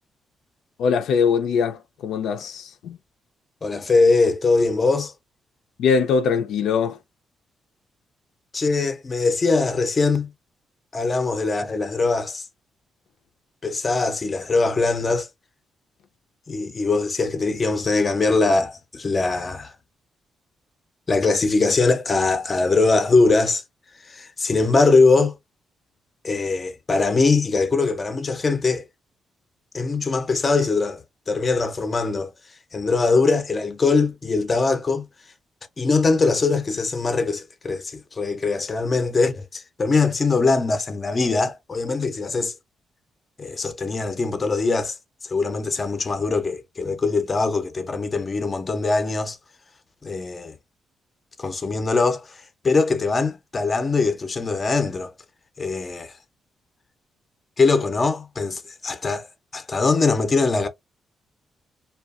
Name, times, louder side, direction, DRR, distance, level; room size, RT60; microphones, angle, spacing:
voice 1, 0.8-3.0 5.8-7.0, left 6 dB, 85° left, 0.4 m, -22 dB
voice 2, 3.6-5.1 8.5-10.3 10.9-12.5 13.6-15.3 16.5-19.8 21.1-23.6 24.0-25.4 26.2-28.9 29.7-35.1 35.8-42.5 43.4-45.0 45.2-49.4 50.0-50.6 51.4-55.1 55.6-56.1 57.6-59.3 59.5-60.7, left 3 dB, 30° left, 0.5 m, -22 dB
2.8 x 2.3 x 2.4 m
cardioid pair, 130°, 0 cm